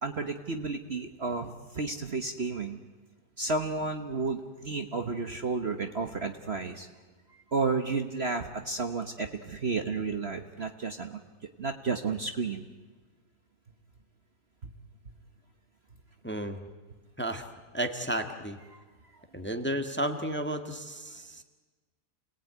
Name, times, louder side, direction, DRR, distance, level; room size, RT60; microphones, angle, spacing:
voice 1, 0.0-2.8 3.4-6.9 7.5-11.2 11.6-12.6 14.6-14.7 18.7-18.8, right 4 dB, 40° right, 6 dB, 1.3 m, -32 dB
voice 2, 16.2-16.6 17.2-17.5 17.7-18.6 19.3-21.4, right 1 dB, 5° left, 6 dB, 1.4 m, -32 dB
28.5 x 19.5 x 9.5 m, 1.3 s
omnidirectional pair, 1.8 m